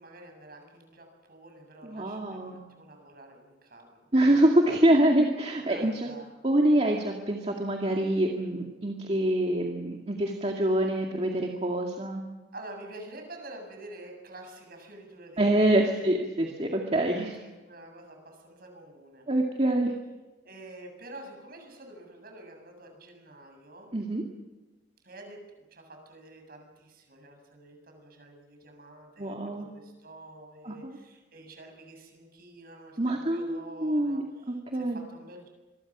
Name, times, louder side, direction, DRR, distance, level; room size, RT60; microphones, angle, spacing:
voice 1, 0.0-4.1 5.7-6.3 12.5-16.1 17.1-19.3 20.4-23.9 25.0-25.4 25.7-35.5, right 1 dB, 55° right, 3 dB, 7.4 m, -48 dB
voice 2, 1.8-2.6 4.1-6.1 6.4-12.2 15.4-17.4 19.3-19.9 23.9-24.2 29.2-29.7 30.6-31.0 33.0-35.0, right 1 dB, 35° right, 1 dB, 2.2 m, -25 dB
26.5 x 22.5 x 6.2 m, 1.2 s
head